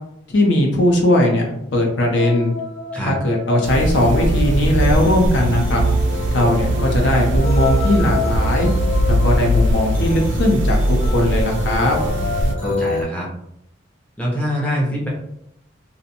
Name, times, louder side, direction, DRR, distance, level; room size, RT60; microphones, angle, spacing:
voice 1, 0.3-2.5 3.0-5.8 6.3-8.7 9.1-12.0, left 1 dB, 65° left, 1 dB, 0.5 m, -18 dB
sound 1, 2.1-13.0, left 4 dB, 85° left, 0.9 m, -29 dB
sound 2, 3.6-12.5, right 1 dB, 65° right, 0.3 m, -20 dB
voice 2, 12.6-13.3 14.2-15.1, equal, 5° left, -4 dB, 0.5 m, -24 dB
2.5 x 2.1 x 2.7 m, 0.76 s
head